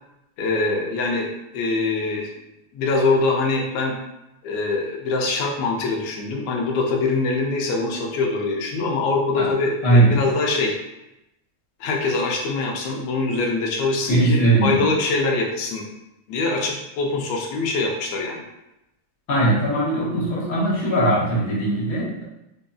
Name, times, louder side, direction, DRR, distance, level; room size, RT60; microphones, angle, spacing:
voice 1, 0.4-2.3 2.7-3.9 4.4-10.7 11.8-15.9 16.3-18.4, left 3 dB, 75° left, -1 dB, 1.6 m, -23 dB
voice 2, 9.8-10.3 14.1-14.9 19.3-22.3, right 1 dB, 60° left, -7 dB, 1.5 m, -19 dB
5.3 x 2.6 x 2.3 m, 0.89 s
omnidirectional pair, 3.4 m